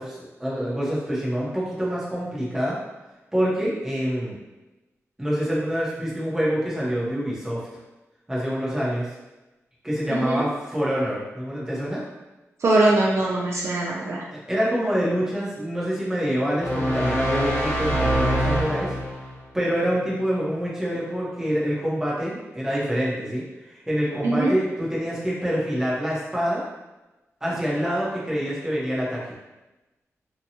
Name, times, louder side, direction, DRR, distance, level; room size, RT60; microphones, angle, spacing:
voice 1, 0.0-2.8 3.3-4.4 5.2-7.7 8.3-9.1 9.8-12.0 14.3-18.9 19.5-26.6 27.4-29.2, equal, 10° right, -7 dB, 0.8 m, -26 dB
voice 2, 10.1-10.4 12.6-14.2 24.2-24.5, right 2 dB, 60° right, -3 dB, 0.4 m, -21 dB
sound 1, 16.6-19.4, equal, 35° left, 1.0 m, -24 dB
2.8 x 2.2 x 2.7 m, 1.1 s
wide cardioid pair, 125°, 5 cm